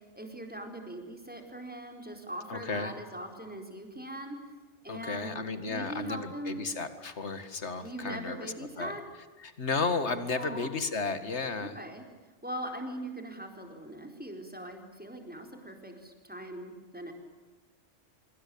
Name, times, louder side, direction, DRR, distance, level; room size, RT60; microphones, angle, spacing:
voice 1, 0.1-4.4 4.8-6.7 7.8-9.0 10.3-10.7 11.6-12.0 12.4-17.1, right 1 dB, 10° right, 3 dB, 4.5 m, -41 dB
voice 2, 2.5-2.9 4.9-8.9 9.4-11.8, left 4 dB, 75° left, 11 dB, 2.3 m, -33 dB
26.0 x 24.5 x 8.7 m, 1.2 s
omnidirectional pair, 1.2 m